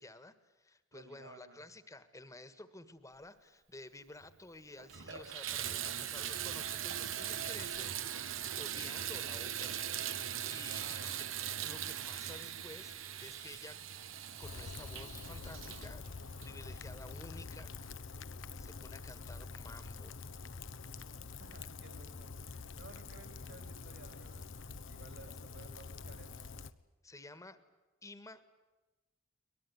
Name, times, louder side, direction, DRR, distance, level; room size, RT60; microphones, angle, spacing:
voice 1, 0.0-7.9 8.6-9.9 10.5-11.2 11.6-13.8 14.4-16.0 16.4-17.7 18.6-20.2 27.0-27.6 28.0-28.5, left 2 dB, 15° left, 13 dB, 1.6 m, -52 dB
voice 2, 0.9-1.6 10.5-11.1 21.1-24.5 24.9-26.5, right 3 dB, 65° right, 6 dB, 3.7 m, -56 dB
Water tap faucet / Bathtub (filling or washing), 4.2-4.3 4.8-17.2 17.8-17.9 18.5-18.6, right 10 dB, 85° right, 1.4 m, -40 dB
Rain, 14.4-26.7, left 4 dB, 70° left, 1.0 m, -46 dB
23.0 x 21.0 x 9.8 m, 1.1 s
head